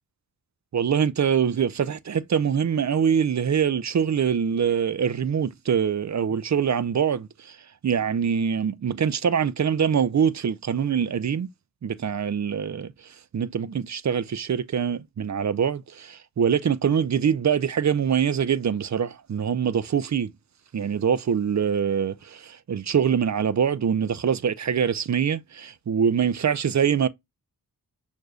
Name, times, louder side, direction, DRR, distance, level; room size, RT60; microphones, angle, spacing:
voice 1, 0.7-7.6 7.8-11.5 11.8-20.3 20.7-27.1, right 7 dB, 45° right, 0.5 m, -24 dB
6.4 x 2.7 x 2.2 m
cardioid pair, 50°, 39 cm